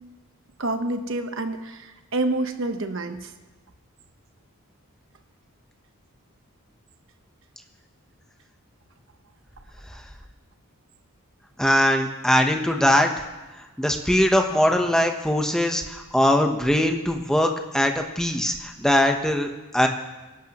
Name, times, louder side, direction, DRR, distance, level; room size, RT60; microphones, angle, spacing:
voice 1, 0.6-3.3, right 2 dB, 60° right, 7 dB, 1.1 m, -28 dB
voice 2, 11.6-13.1 13.8-19.5 19.7-19.9, left 1 dB, 5° left, 3 dB, 1.0 m, -21 dB
25.5 x 11.5 x 3.0 m, 1.1 s
head